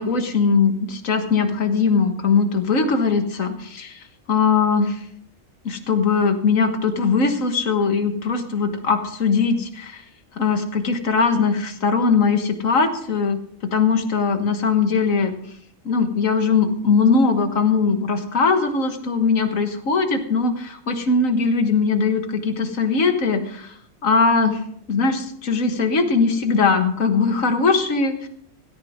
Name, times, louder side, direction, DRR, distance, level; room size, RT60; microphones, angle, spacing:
voice 1, 0.0-4.0 4.3-5.0 5.7-10.0 10.4-15.3 15.9-23.7 24.0-24.6 24.9-28.3, left 4 dB, 80° left, 7 dB, 1.8 m, -20 dB
16.5 x 13.5 x 3.6 m, 0.65 s
omnidirectional pair, 1.4 m